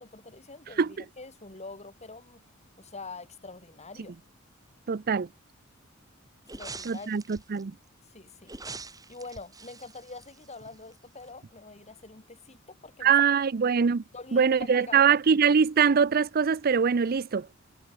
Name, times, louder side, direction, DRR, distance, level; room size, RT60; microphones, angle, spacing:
voice 1, 0.0-2.4 2.8-4.2 6.5-7.2 8.0-8.5 9.1-13.1 14.1-15.2, left 3 dB, 35° left, 4.3 m, -45 dB
voice 2, 4.9-5.3 6.8-7.7 13.0-14.0 14.3-17.5, right 6 dB, 45° right, 0.5 m, -23 dB
sound 1, 6.4-7.6 8.4-10.9 11.2-11.3, right 3 dB, 20° right, 4.7 m, -44 dB
head